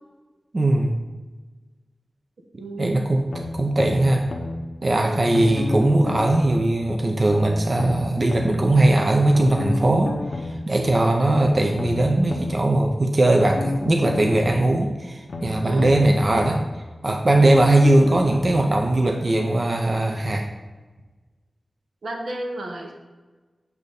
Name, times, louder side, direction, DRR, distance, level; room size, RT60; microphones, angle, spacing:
voice 1, 0.5-1.0 2.8-4.2 4.8-10.1 10.4-16.6 17.0-20.5, right 1 dB, 50° right, 3 dB, 0.6 m, -20 dB
voice 2, 2.6-3.1 5.0-5.2 10.8-11.0 15.6-15.9 17.4-17.6 22.0-22.9, right 1 dB, 85° right, 1 dB, 0.9 m, -33 dB
sound 1, 3.3-4.6 5.3-6.6 7.3-8.6 9.3-10.6 11.3-12.6 13.3-14.6 15.3-16.6 17.3-18.6 19.3-19.4, left 2 dB, 80° left, 0.8 m, -29 dB
8.2 x 2.7 x 5.2 m, 1.3 s
cardioid pair, 50°, 0 cm